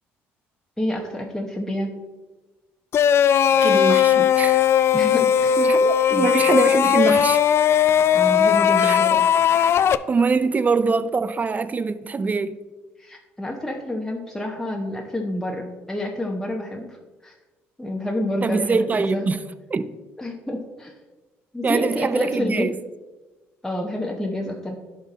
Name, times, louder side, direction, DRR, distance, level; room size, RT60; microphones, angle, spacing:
voice 1, 0.8-1.9 4.9-5.6 6.1-6.3 8.1-9.2 13.0-17.0 17.2-17.3 17.8-19.3 20.2-20.9 21.5-22.7 23.6-24.8, left 1 dB, 10° left, 1.0 m, -28 dB
sound 1, 2.9-10.0, left 8 dB, 50° left, 0.3 m, -18 dB
voice 2, 3.5-4.6 5.6-7.4 8.8-9.0 10.1-12.6 18.4-19.4 19.7-19.9 21.6-22.8, right 4 dB, 30° right, 0.5 m, -23 dB
11.0 x 3.8 x 4.2 m
supercardioid pair, 75°, 5 cm